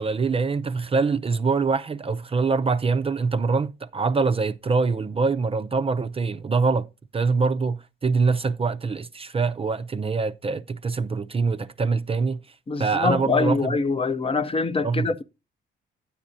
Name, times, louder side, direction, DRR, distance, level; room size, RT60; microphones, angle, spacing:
voice 1, 0.0-6.9 7.1-12.4 12.8-13.8 14.8-15.2, right 4 dB, 30° right, 0.5 m, -24 dB
voice 2, 12.7-15.2, left 3 dB, 30° left, 0.7 m, -24 dB
9.8 x 8.5 x 2.7 m
cardioid pair, 90°, 20 cm